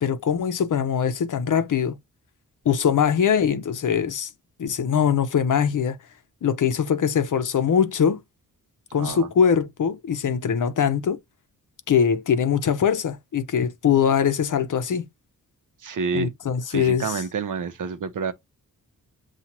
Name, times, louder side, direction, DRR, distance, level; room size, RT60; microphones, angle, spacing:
voice 1, 0.0-2.0 2.6-4.3 4.6-6.0 6.4-8.2 8.9-11.2 11.9-15.1 16.1-17.2, left 7 dB, 60° left, 0.7 m, -22 dB
voice 2, 15.8-16.3 16.7-18.3, right 5 dB, 65° right, 0.7 m, -28 dB
7.2 x 2.4 x 2.9 m
wide cardioid pair, 105°, 35 cm